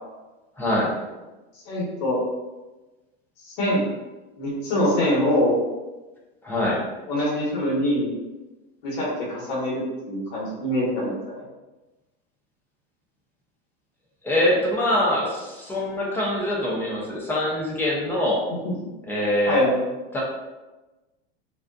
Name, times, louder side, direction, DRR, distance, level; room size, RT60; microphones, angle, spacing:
voice 1, 0.6-0.9 6.4-6.8 14.2-18.5 19.1-19.6 20.1-20.2, left 1 dB, 5° left, -5 dB, 0.3 m, -24 dB
voice 2, 1.7-2.2 3.4-3.8 4.4-5.5 7.1-8.1 8.8-11.4 18.6-18.7 19.5-19.8, left 1 dB, 60° left, -4 dB, 1.1 m, -24 dB
2.4 x 2.3 x 2.3 m, 1.1 s
supercardioid pair, 135°, 31 cm